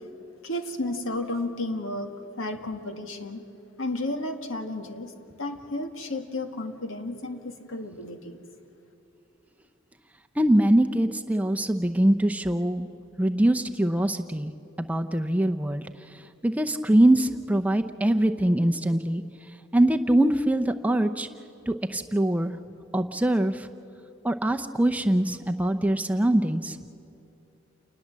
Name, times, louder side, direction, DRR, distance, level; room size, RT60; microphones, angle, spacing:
voice 1, 0.4-2.1 2.4-3.4 3.8-5.1 5.4-8.4, left 2 dB, 80° left, 6 dB, 2.0 m, -32 dB
voice 2, 10.4-12.9 13.2-14.5 14.8-15.9 16.4-19.2 19.7-21.3 21.7-22.5 22.9-23.7 24.2-26.8, right 1 dB, 5° right, 7 dB, 0.6 m, -23 dB
29.0 x 20.0 x 7.4 m, 2.8 s
head